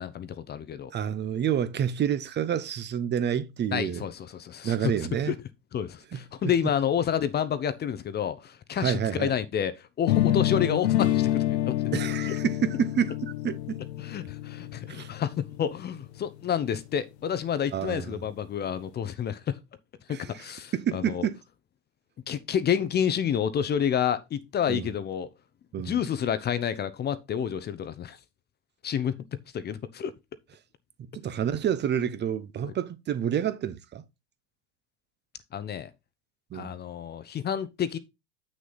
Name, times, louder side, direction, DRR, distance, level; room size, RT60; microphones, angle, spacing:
voice 1, 0.0-0.9 3.7-4.9 5.3-5.4 5.7-11.8 14.0-19.6 20.1-21.3 22.3-25.3 25.8-28.2 28.8-29.2 29.5-30.1 32.6-32.7 35.5-35.9 36.5-38.0, left 8 dB, 30° left, 0.8 m, -29 dB
voice 2, 0.9-4.0 4.6-5.3 6.1-6.2 8.8-9.3 11.9-13.8 14.9-15.1 17.7-18.2 20.1-20.4 20.7-21.4 24.7-24.9 25.7-26.0 31.1-34.0 36.5-36.7, right 9 dB, 30° right, 0.9 m, -29 dB
sound 1, 10.1-16.0, left 13 dB, 75° left, 1.0 m, -27 dB
7.7 x 6.4 x 4.0 m
hypercardioid pair, 100°, 35 cm